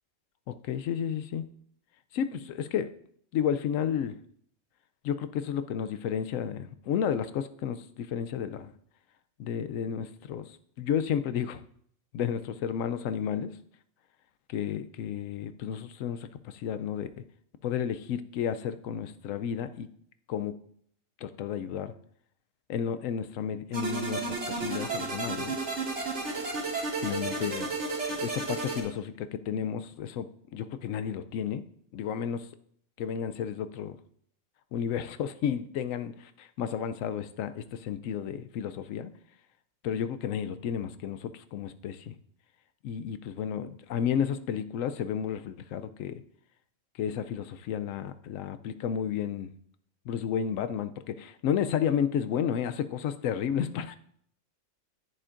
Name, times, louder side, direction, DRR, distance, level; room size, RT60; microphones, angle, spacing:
voice 1, 0.5-1.4 2.1-2.9 3.3-4.1 5.0-8.7 9.4-10.5 10.8-11.6 12.1-13.5 14.5-17.1 17.6-19.9 20.3-20.5 21.2-21.9 22.7-25.6 27.0-27.7 28.2-31.6 31.9-32.4 33.0-34.0 34.7-36.1 36.4-39.1 39.8-42.1 42.8-46.1 47.0-49.5 50.1-54.0, left 8 dB, 75° left, 11 dB, 0.9 m, -32 dB
sound 1, 23.7-28.8, right 3 dB, 60° right, 2.3 m, -32 dB
10.5 x 10.0 x 2.5 m, 0.65 s
omnidirectional pair, 1.4 m